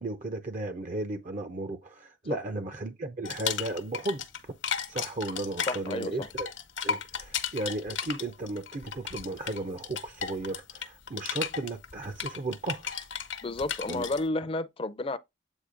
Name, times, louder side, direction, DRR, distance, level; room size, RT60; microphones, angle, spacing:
voice 1, 0.0-4.2 4.9-6.5 6.8-13.0 13.9-14.0, right 2 dB, 40° right, 0.6 m, -35 dB
sound 1, 3.2-4.4 4.6-14.2, left 7 dB, 70° left, 1.0 m, -35 dB
voice 2, 5.7-6.3 13.4-15.2, left 2 dB, 30° left, 0.5 m, -31 dB
8.2 x 2.7 x 5.1 m
head